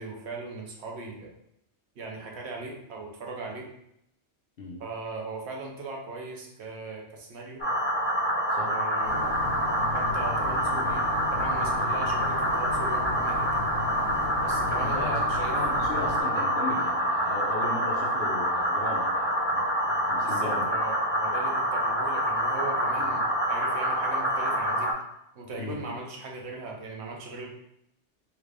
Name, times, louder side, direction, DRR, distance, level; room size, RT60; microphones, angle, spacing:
voice 1, 0.0-1.3 2.0-3.7 4.8-7.7 8.6-9.3 9.9-11.0 11.3-13.4 14.4-15.9 20.2-24.9 25.3-27.5, right 3 dB, 70° right, 0 dB, 1.0 m, -39 dB
sound 1, 7.6-24.9, equal, 15° left, 0.4 m, -27 dB
sound 2, 9.0-16.2, left 3 dB, 85° left, 1.0 m, -36 dB
voice 2, 14.7-20.7 23.0-23.2 25.6-25.8, left 2 dB, 55° left, -2 dB, 0.9 m, -37 dB
3.3 x 2.4 x 3.2 m, 0.79 s
omnidirectional pair, 1.2 m